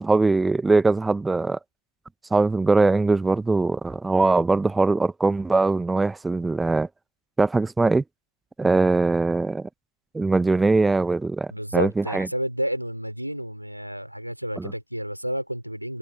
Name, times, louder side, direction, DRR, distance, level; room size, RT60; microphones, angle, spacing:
voice 1, 0.0-1.6 2.3-6.9 7.4-8.0 8.6-9.7 10.1-12.3 14.6-14.7, right 3 dB, 10° right, 1.0 m, -21 dB
voice 2, 11.5-16.0, equal, 90° right, 3.8 m, -30 dB
figure-of-eight pair, 90°, 0 cm